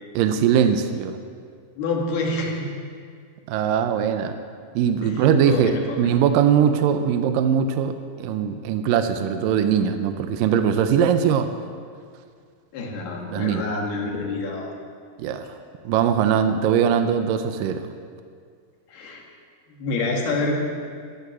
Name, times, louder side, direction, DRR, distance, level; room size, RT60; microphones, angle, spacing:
voice 1, 0.1-1.2 3.5-4.4 4.8-11.5 13.3-13.6 15.2-15.5 15.9-17.9, right 8 dB, 80° right, 8 dB, 2.2 m, -21 dB
voice 2, 1.8-2.7 5.0-5.3 5.5-6.0 12.7-14.7 18.9-19.2 19.7-20.6, left 3 dB, 90° left, -1 dB, 3.9 m, -27 dB
15.0 x 12.5 x 6.3 m, 2.1 s
omnidirectional pair, 4.4 m